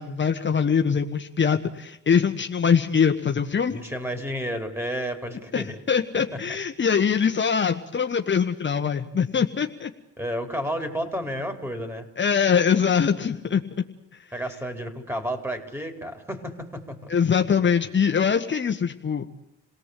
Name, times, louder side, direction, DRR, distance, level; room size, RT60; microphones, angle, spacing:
voice 1, 0.0-3.8 5.5-9.9 12.2-13.6 17.1-19.3, left 6 dB, 40° left, 5 dB, 1.6 m, -23 dB
voice 2, 3.7-5.8 6.3-6.6 10.2-12.1 14.3-17.1, equal, 10° right, 6 dB, 5.2 m, -31 dB
28.5 x 18.5 x 8.5 m, 0.83 s
cardioid pair, 90°, 30 cm